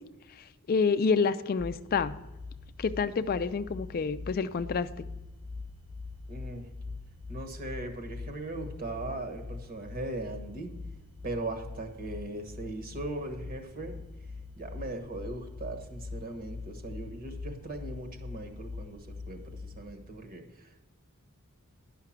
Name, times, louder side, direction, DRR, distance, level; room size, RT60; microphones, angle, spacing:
voice 1, 0.7-2.2 2.8-5.0, left 5 dB, 45° left, 12 dB, 0.4 m, -28 dB
sound 1, 1.6-19.9, left 3 dB, 65° right, 1.5 m, -43 dB
voice 2, 6.3-6.7 7.3-10.7 11.2-14.0 14.6-20.8, right 2 dB, 40° right, 6 dB, 1.4 m, -39 dB
11.0 x 5.8 x 7.3 m, 1.0 s
head